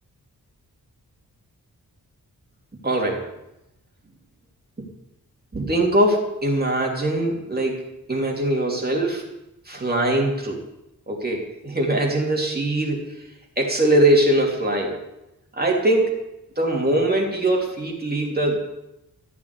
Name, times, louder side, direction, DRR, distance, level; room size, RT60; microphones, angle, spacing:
voice 1, 2.8-3.3 4.8-4.9 5.5-9.3 9.7-10.6 11.1-13.1 13.6-15.0 15.6-16.2 16.6-18.6, right 1 dB, 25° right, -1 dB, 3.0 m, -22 dB
14.0 x 7.6 x 9.6 m, 0.90 s
wide cardioid pair, 150°, 35 cm